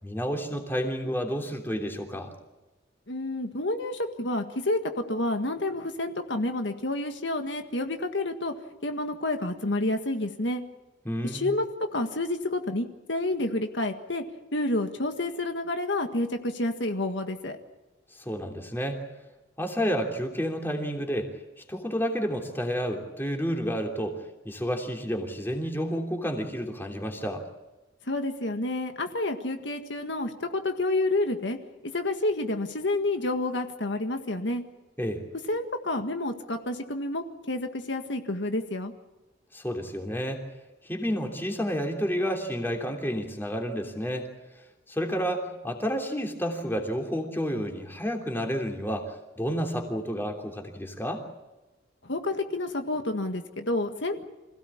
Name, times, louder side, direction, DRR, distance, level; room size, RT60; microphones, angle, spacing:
voice 1, 0.0-2.3 11.0-11.5 18.2-19.0 19.6-21.3 21.7-27.4 35.0-35.2 39.5-40.4 40.8-44.3 44.9-51.2, equal, 10° left, 2 dB, 3.1 m, -30 dB
voice 2, 3.1-8.5 8.8-10.6 11.2-11.7 11.9-14.2 14.5-17.6 28.1-31.6 31.8-34.6 35.5-38.9 52.0-54.2, left 2 dB, 70° left, 5 dB, 1.8 m, -29 dB
26.5 x 16.5 x 8.6 m, 1.1 s
head